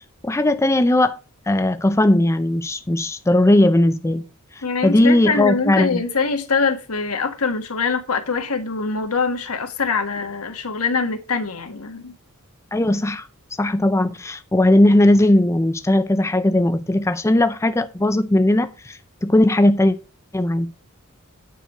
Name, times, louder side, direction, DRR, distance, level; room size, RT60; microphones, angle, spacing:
voice 1, 0.2-1.2 1.5-4.2 4.5-6.0 12.7-13.3 13.6-20.0 20.3-20.7, left 1 dB, 15° left, 0.5 m, -18 dB
voice 2, 4.6-12.1, left 4 dB, 80° left, 1.5 m, -23 dB
9.3 x 4.7 x 6.3 m
head